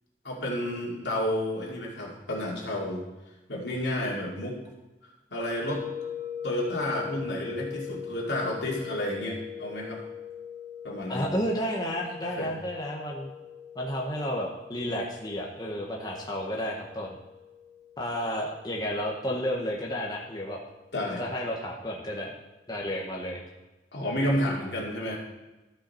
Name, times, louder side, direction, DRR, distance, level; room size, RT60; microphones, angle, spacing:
voice 1, 0.2-3.0 3.5-4.6 5.3-5.8 6.4-10.0 10.8-11.3 12.4-12.5 20.9-21.2 23.9-25.2, left 1 dB, 75° left, -3 dB, 2.5 m, -30 dB
sound 1, 5.7-20.6, left 8 dB, 40° right, 0.6 m, -42 dB
voice 2, 11.1-13.3 13.8-17.2 18.0-20.6 21.2-22.3 22.7-23.4, equal, 20° left, -1 dB, 0.9 m, -32 dB
13.0 x 5.6 x 4.3 m, 1.1 s
head